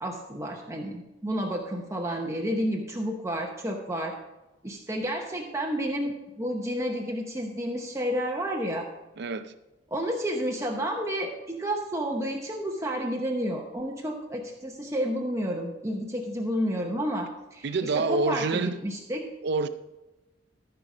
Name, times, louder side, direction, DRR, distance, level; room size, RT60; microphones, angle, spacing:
voice 1, 0.0-4.1 4.6-8.9 9.9-17.7 18.1-19.2, equal, 15° right, 0.9 m, -30 dB
voice 2, 9.2-9.5 17.6-18.8 19.4-19.7, right 3 dB, 65° right, 0.5 m, -27 dB
14.0 x 5.7 x 5.0 m
head